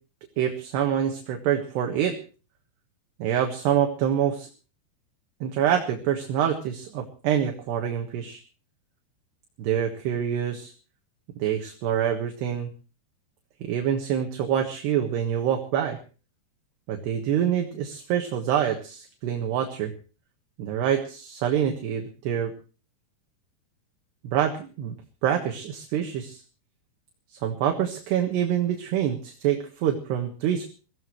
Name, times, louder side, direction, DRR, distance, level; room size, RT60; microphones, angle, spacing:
voice 1, 0.4-2.2 3.2-4.5 5.4-8.4 9.6-10.7 11.4-12.7 13.6-16.0 16.9-19.9 20.6-22.5 24.2-24.9 25.2-26.4 27.4-30.7, right 9 dB, 70° right, 3 dB, 3.4 m, -26 dB
23.0 x 16.0 x 3.1 m, 0.36 s
omnidirectional pair, 5.4 m